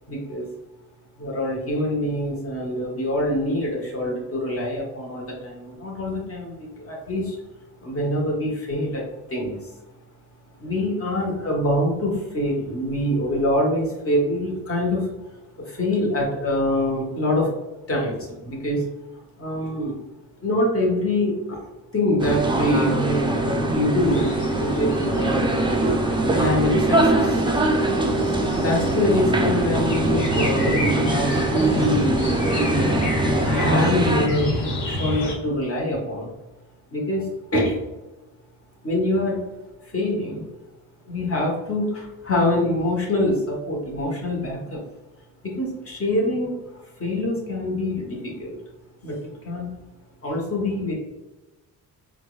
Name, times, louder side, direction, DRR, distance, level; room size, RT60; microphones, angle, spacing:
voice 1, 0.1-0.5 1.2-7.3 7.8-9.0 9.3-9.6 10.6-15.1 15.7-17.5 17.9-18.8 19.4-19.9 20.4-21.7 21.9-24.2 24.6-25.5 26.3-27.4 28.4-32.1 32.5-34.5 34.9-36.3 36.9-37.8 38.8-39.4 39.9-40.4 41.0-44.8 45.4-46.6 47.0-48.6 49.0-49.2 49.4-49.7 50.2-50.9, left 1 dB, 30° left, -1 dB, 1.4 m, -25 dB
sound 1, 22.2-34.3, right 2 dB, 10° right, 0.5 m, -22 dB
sound 2, 24.0-35.4, left 1 dB, 80° left, 1.0 m, -29 dB
4.4 x 2.4 x 2.5 m, 1.1 s
supercardioid pair, 55°, 42 cm